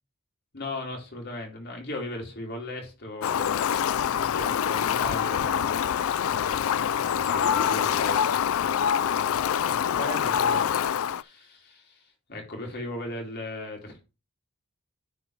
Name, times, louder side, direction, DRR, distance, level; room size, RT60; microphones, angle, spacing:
voice 1, 0.5-6.7 7.0-14.0, left 1 dB, 50° left, 3.2 m, -38 dB
Fowl, 3.2-11.2, left 8 dB, 65° left, 0.4 m, -25 dB
9.9 x 4.6 x 4.7 m
head